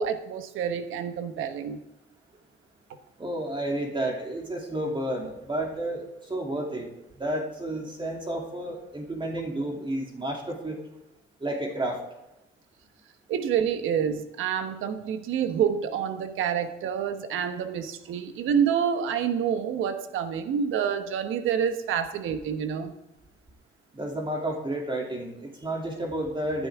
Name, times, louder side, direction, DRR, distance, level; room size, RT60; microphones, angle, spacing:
voice 1, 0.0-1.8 13.3-22.9, right 8 dB, 85° right, 8 dB, 1.2 m, -28 dB
voice 2, 3.2-6.9 7.2-10.8 11.4-12.0 23.9-26.7, right 1 dB, 25° right, 0 dB, 2.8 m, -31 dB
15.0 x 10.5 x 3.6 m, 0.95 s
cardioid pair, 90°, 20 cm